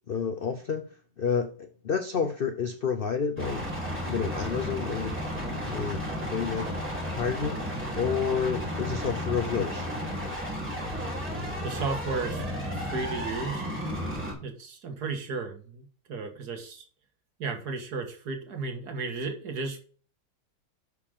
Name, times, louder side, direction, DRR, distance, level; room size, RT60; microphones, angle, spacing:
voice 1, 0.1-0.9 1.2-3.7 4.0-6.7 7.0-9.9, left 6 dB, 65° left, 7 dB, 0.5 m, -30 dB
sound 1, 3.4-14.3, equal, 5° right, 3.2 m, -33 dB
voice 2, 11.6-13.6 14.4-16.8 17.4-19.8, right 4 dB, 65° right, 4 dB, 1.9 m, -34 dB
11.5 x 5.0 x 3.6 m, 0.42 s
omnidirectional pair, 1.9 m